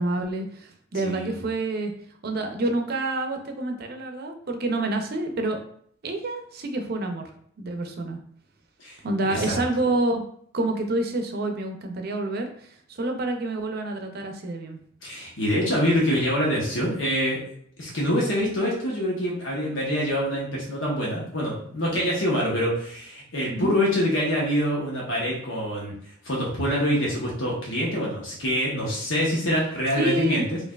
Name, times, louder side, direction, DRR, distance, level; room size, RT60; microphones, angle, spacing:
voice 1, 0.0-1.9 2.2-5.6 6.0-7.2 7.6-8.2 9.0-10.2 10.5-14.8 23.5-23.7 30.0-30.5, right 2 dB, 55° right, 4 dB, 0.5 m, -28 dB
voice 2, 8.8-9.6 15.0-17.4 17.8-25.9 26.2-30.6, equal, 85° left, -4 dB, 1.0 m, -25 dB
4.6 x 2.5 x 2.3 m, 0.63 s
head